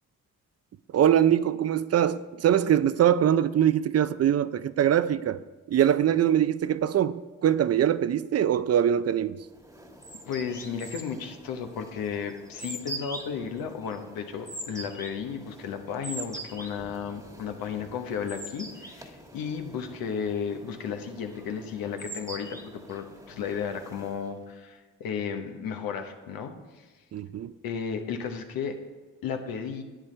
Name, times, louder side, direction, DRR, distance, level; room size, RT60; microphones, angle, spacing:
voice 1, 0.9-5.4 5.7-9.4 27.1-27.5, right 10 dB, 45° right, 0.4 m, -23 dB
sound 1, 9.5-24.4, right 1 dB, 10° right, 1.3 m, -43 dB
voice 2, 10.3-26.9 27.6-28.8 29.2-29.8, left 7 dB, 85° left, 1.0 m, -34 dB
11.0 x 8.5 x 3.3 m
supercardioid pair, 65°, 35 cm